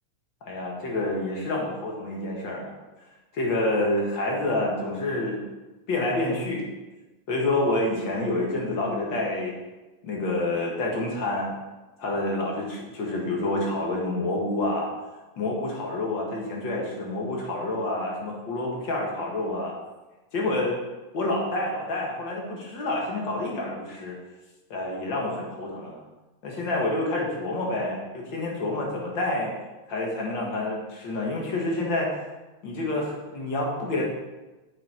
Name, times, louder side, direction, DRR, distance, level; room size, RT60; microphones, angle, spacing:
voice 1, 0.4-2.7 3.3-5.4 5.9-6.7 7.3-9.5 10.0-11.5 12.0-14.9 15.4-19.8 20.3-20.8 21.1-24.2 24.7-26.0 26.4-29.5 29.9-32.1 32.6-34.0, left 2 dB, 45° left, -2 dB, 2.1 m, -28 dB
8.2 x 7.6 x 4.4 m, 1.1 s
omnidirectional pair, 3.3 m